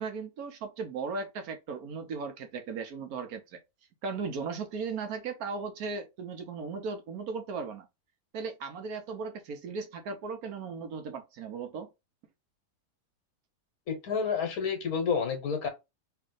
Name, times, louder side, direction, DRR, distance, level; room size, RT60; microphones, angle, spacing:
voice 1, 0.0-3.6 4.0-7.9 8.3-11.9, right 4 dB, 75° right, 1.2 m, -37 dB
voice 2, 13.9-15.7, left 6 dB, 75° left, 1.5 m, -29 dB
3.3 x 2.7 x 3.8 m
omnidirectional pair, 1.6 m